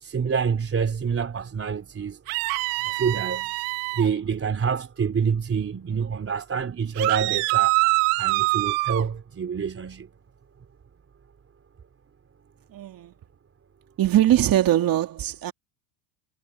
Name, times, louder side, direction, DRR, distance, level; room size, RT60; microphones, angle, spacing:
voice 1, 0.0-2.2 2.8-3.5 4.0-7.8 8.2-10.1, right 6 dB, 25° right, 3.3 m, -27 dB
sound 1, 2.3-4.1 7.0-9.0, right 24 dB, 75° right, 1.8 m, -24 dB
voice 2, 12.7-13.1 14.0-15.5, right 12 dB, 40° right, 2.5 m, -21 dB
supercardioid pair, 105°, 50 cm